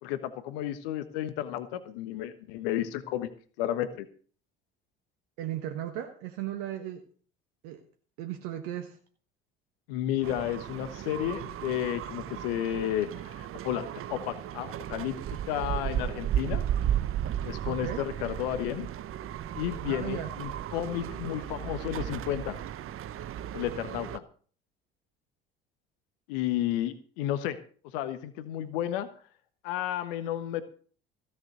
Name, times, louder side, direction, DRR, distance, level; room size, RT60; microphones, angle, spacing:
voice 1, 0.0-3.3 3.6-4.1 9.9-15.1 15.5-16.6 17.4-18.9 19.5-22.6 23.5-24.2 26.3-27.6 27.9-29.1 29.6-30.6, left 12 dB, 75° left, 12 dB, 1.3 m, -32 dB
voice 2, 5.4-7.0 7.6-7.8 8.2-9.0 17.7-18.0 19.8-20.3, right 12 dB, 70° right, 6 dB, 1.5 m, -36 dB
sound 1, 10.2-24.2, right 10 dB, 50° right, 0.9 m, -35 dB
16.0 x 7.2 x 6.8 m, 0.44 s
hypercardioid pair, 60°, 29 cm